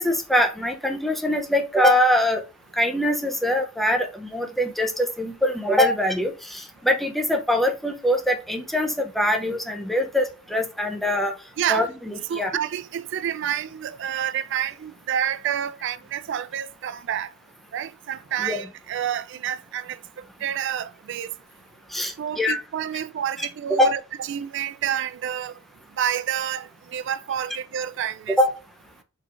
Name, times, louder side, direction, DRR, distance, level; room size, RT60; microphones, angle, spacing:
voice 1, 0.0-2.4 2.8-11.3 11.7-12.5 18.4-18.6 21.9-22.6 23.4-23.5 23.8-23.9 28.4-28.5, left 1 dB, ahead, 0.6 m, -23 dB
voice 2, 11.6-11.9 12.3-17.3 17.7-20.0 20.4-21.3 22.2-24.0 24.3-25.5 26.0-28.4, right 9 dB, 60° right, 0.3 m, -28 dB
4.6 x 4.0 x 2.5 m
head